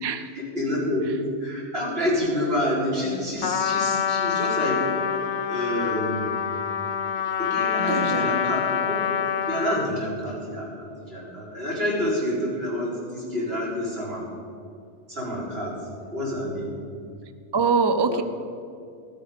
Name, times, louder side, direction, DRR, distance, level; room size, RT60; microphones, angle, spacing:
voice 1, 0.3-4.8 5.5-6.3 7.4-9.0 9.5-14.3 15.1-15.8 16.1-16.7 18.1-18.2, left 1 dB, 60° right, -6 dB, 4.4 m, -28 dB
Trumpet, 3.4-10.0, left 7 dB, 50° left, 0.7 m, -26 dB
voice 2, 7.8-8.3 17.5-18.2, right 5 dB, 35° right, 10 dB, 0.4 m, -23 dB
14.5 x 13.5 x 5.1 m, 2.4 s
omnidirectional pair, 1.1 m